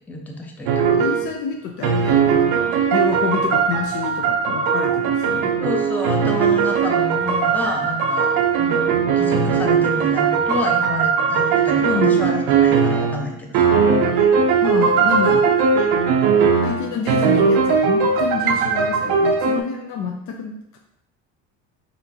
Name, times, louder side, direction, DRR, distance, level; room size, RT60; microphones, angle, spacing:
voice 1, 0.1-1.0 5.6-13.7, left 2 dB, 5° left, 1 dB, 0.6 m, -29 dB
sound 1, 0.7-1.3 1.8-13.3 13.5-19.6, right 6 dB, 80° right, 0.7 m, -19 dB
voice 2, 0.9-5.6 11.8-12.4 14.6-15.6 16.6-20.8, left 6 dB, 55° left, 2 dB, 0.6 m, -28 dB
4.2 x 3.7 x 2.8 m, 0.80 s
cardioid pair, 105°, 36 cm